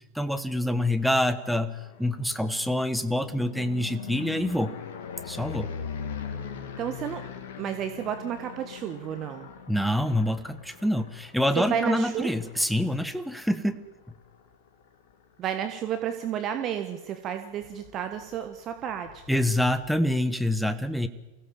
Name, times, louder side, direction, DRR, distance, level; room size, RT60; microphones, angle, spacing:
voice 1, 0.1-4.7 5.3-5.7 9.7-13.8 19.3-21.1, left 1 dB, ahead, 11 dB, 1.4 m, -26 dB
sound 1, 1.4-15.3 15.8-16.3 16.5-16.6 16.9-20.0, left 7 dB, 55° left, 2.4 m, -42 dB
voice 2, 6.8-7.2 7.6-9.5 11.5-12.3 15.4-19.4, right 9 dB, 30° right, 8 dB, 1.4 m, -31 dB
24.5 x 16.5 x 7.4 m, 1.2 s
figure-of-eight pair, 90°, 0 cm